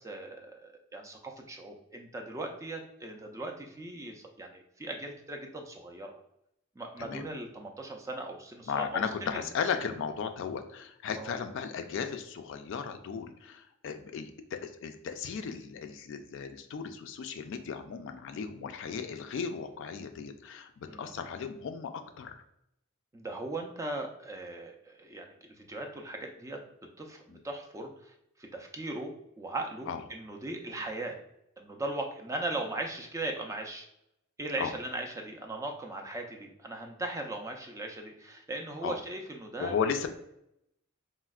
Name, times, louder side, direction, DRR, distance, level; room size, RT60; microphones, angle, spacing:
voice 1, 0.0-6.1 6.8-9.4 11.2-11.4 20.8-21.2 23.1-26.6 27.0-31.2 31.6-33.9 34.4-39.8, right 2 dB, 15° right, 2 dB, 0.3 m, -39 dB
voice 2, 8.7-22.4 27.3-27.4 29.9-30.0 34.6-34.7 38.8-39.0 39.6-40.1, left 6 dB, 65° left, 7 dB, 0.3 m, -35 dB
4.2 x 2.0 x 2.3 m, 0.80 s
head